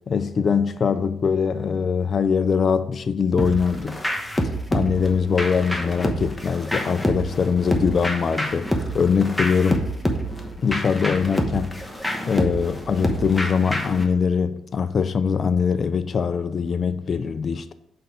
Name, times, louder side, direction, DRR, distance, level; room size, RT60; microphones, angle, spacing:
voice 1, 0.1-4.0 4.7-8.7 8.9-9.9 10.6-11.8 12.2-17.7, left 6 dB, 45° left, 0.4 m, -22 dB
sound 1, 3.4-14.0, equal, 5° left, 1.0 m, -27 dB
5.6 x 4.3 x 5.1 m
cardioid pair, 90°, 0 cm